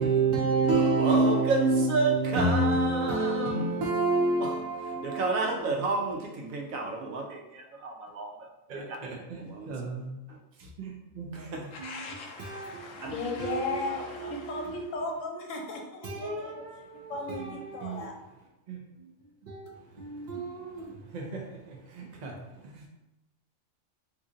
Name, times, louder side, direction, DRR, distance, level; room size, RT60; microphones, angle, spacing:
voice 1, 0.0-8.3 9.4-9.7 11.3-11.7 13.0-13.1 14.2-14.3, right 3 dB, 85° right, 1.0 m, -26 dB
voice 2, 8.7-10.2 10.8-12.0 12.4-14.7 16.0-18.1 18.7-19.1 19.5-22.9, right 4 dB, 65° right, 0.4 m, -40 dB
voice 3, 11.7-16.5 17.1-18.1, left 3 dB, 75° left, 1.0 m, -36 dB
2.8 x 2.6 x 3.7 m
omnidirectional pair, 1.4 m